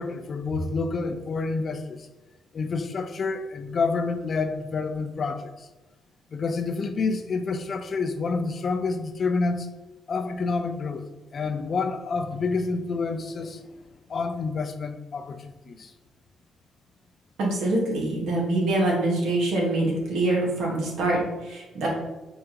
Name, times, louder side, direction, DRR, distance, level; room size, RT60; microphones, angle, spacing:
voice 1, 0.0-2.1 2.5-5.7 6.3-9.7 10.1-13.8 14.1-15.9, left 4 dB, 45° left, 0.4 m, -28 dB
voice 2, 17.4-21.9, right 2 dB, 80° right, 1.3 m, -25 dB
5.5 x 2.6 x 2.8 m
cardioid pair, 90°, 0 cm